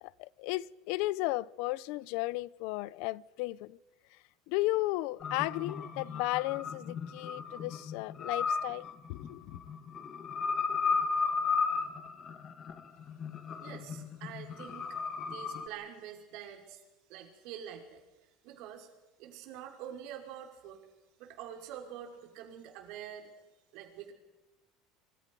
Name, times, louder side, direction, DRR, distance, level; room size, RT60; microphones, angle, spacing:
voice 1, 0.0-3.8 4.5-9.6, left 19 dB, 65° left, 0.7 m, -34 dB
sound 1, 5.2-15.7, left 5 dB, 30° left, 2.1 m, -35 dB
voice 2, 13.6-14.9 15.2-16.8 17.1-18.0 18.4-18.9 19.2-20.8 21.2-23.3 23.7-24.1, right 9 dB, 60° right, 5.2 m, -46 dB
26.0 x 25.0 x 5.4 m
cardioid pair, 155°, 0 cm